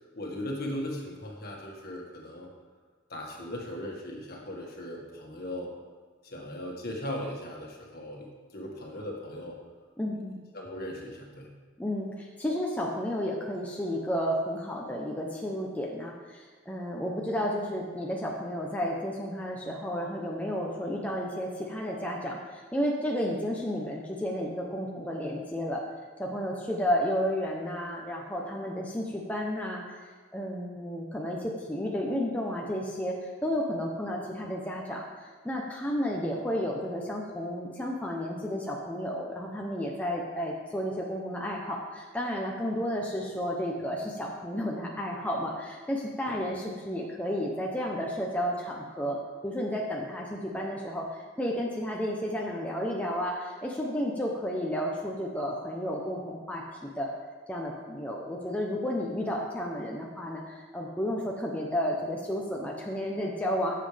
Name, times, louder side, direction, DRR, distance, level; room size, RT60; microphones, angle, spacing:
voice 1, 0.1-2.5 3.1-5.7 6.2-9.6 10.5-11.5 46.3-46.4, left 1 dB, 50° left, -1 dB, 1.8 m, -38 dB
voice 2, 10.0-10.4 11.8-25.8 26.2-29.8 30.3-49.2 49.4-57.1 57.5-63.7, equal, 5° left, -2 dB, 0.8 m, -32 dB
14.5 x 7.6 x 3.5 m, 1.5 s
head